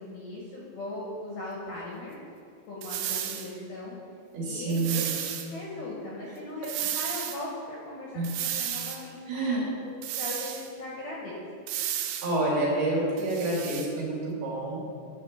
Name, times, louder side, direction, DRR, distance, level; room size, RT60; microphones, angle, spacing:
voice 1, 0.0-2.2 2.7-3.9 4.4-5.0 5.5-11.3, left 2 dB, 70° left, -5 dB, 2.6 m, -39 dB
sound 1, 2.8-3.5 4.7-5.5 6.6-7.4 8.2-9.0 10.0-10.7 11.7-12.3 13.2-13.9, right 10 dB, 80° right, 3.0 m, -33 dB
voice 2, 4.3-5.0 8.1-8.3 9.3-9.6 12.0-14.8, right 2 dB, 60° right, -6 dB, 3.8 m, -28 dB
10.5 x 4.3 x 7.1 m, 2.4 s
omnidirectional pair, 5.5 m